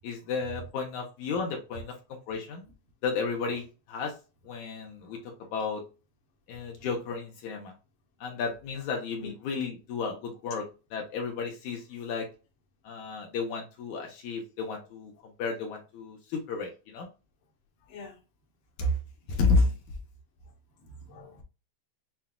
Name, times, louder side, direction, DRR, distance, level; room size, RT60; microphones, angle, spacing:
voice 1, 0.0-2.6 3.0-4.1 4.4-5.8 6.5-7.7 8.2-10.7 10.9-12.3 12.8-17.1 18.8-19.0 19.3-19.7, left 4 dB, 75° left, 2.5 m, -32 dB
voice 2, 17.8-18.2 20.8-21.4, left 4 dB, 55° left, 1.8 m, -45 dB
7.2 x 2.8 x 2.3 m
omnidirectional pair, 3.6 m